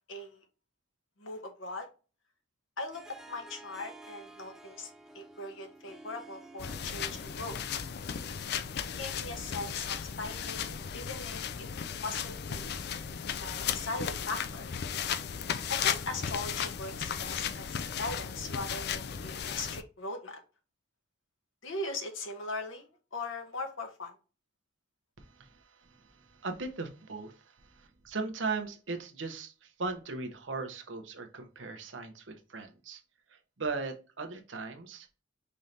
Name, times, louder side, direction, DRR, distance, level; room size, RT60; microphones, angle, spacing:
voice 1, 0.1-0.4 1.2-1.9 2.8-7.6 8.7-11.4 12.0-12.7 13.4-14.7 15.7-20.4 21.6-24.1, left 2 dB, 90° left, 1.1 m, -40 dB
Harp, 2.9-8.4, right 2 dB, ahead, 0.4 m, -52 dB
sound 1, 6.6-19.8, left 8 dB, 55° left, 0.4 m, -35 dB
voice 2, 25.2-33.0 33.3-35.1, right 4 dB, 75° right, 0.9 m, -38 dB
5.5 x 3.2 x 2.7 m
head